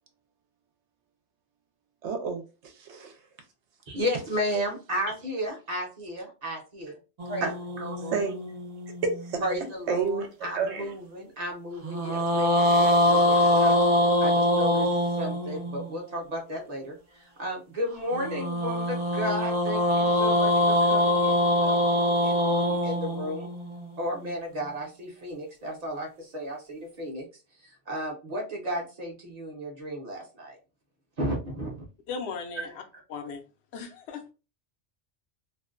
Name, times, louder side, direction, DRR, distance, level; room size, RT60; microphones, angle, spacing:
voice 1, 2.0-3.2 7.4-8.3 9.0-9.4 9.9-10.3 10.5-10.9, right 5 dB, 90° right, 0.9 m, -30 dB
voice 2, 3.9-7.0 7.3-7.5 7.8-8.2 9.4-23.5 24.0-27.3 27.5-30.6 31.2-31.8 32.6-32.7, equal, 45° right, 0.7 m, -34 dB
sound 1, 7.2-9.6 11.8-16.0 18.1-24.3, left 1 dB, 65° right, 0.3 m, -24 dB
voice 3, 32.1-32.7 33.1-33.4 33.7-34.3, left 5 dB, 75° left, 0.8 m, -36 dB
2.5 x 2.1 x 2.3 m
omnidirectional pair, 1.1 m